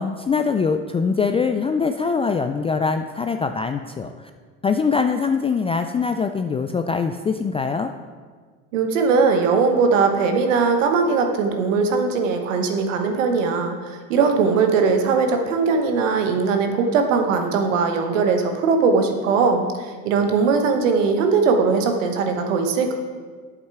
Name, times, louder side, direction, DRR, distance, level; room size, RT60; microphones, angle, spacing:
voice 1, 0.0-4.3 4.6-7.9, left 5 dB, 15° left, 7 dB, 0.3 m, -23 dB
voice 2, 8.7-22.9, right 5 dB, 90° right, 5 dB, 1.1 m, -20 dB
8.3 x 7.4 x 4.8 m, 1.6 s
hypercardioid pair, 80°, 37 cm